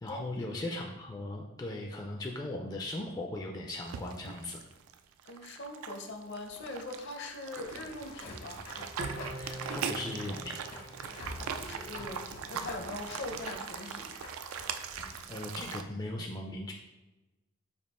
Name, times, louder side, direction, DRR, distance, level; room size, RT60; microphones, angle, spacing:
voice 1, 0.0-4.6 9.4-10.9 15.3-16.7, left 2 dB, 20° left, 0 dB, 0.3 m, -38 dB
sound 1, 3.8-15.8, right 7 dB, 85° right, 0.3 m, -41 dB
voice 2, 5.3-8.6 11.3-14.1, left 2 dB, 60° left, 4 dB, 0.6 m, -42 dB
sound 2, 7.6-15.9, left 1 dB, 75° left, 1.2 m, -47 dB
Bowed string instrument, 9.0-12.2, right 2 dB, 60° right, 0.7 m, -43 dB
5.1 x 2.4 x 4.2 m, 1.0 s
head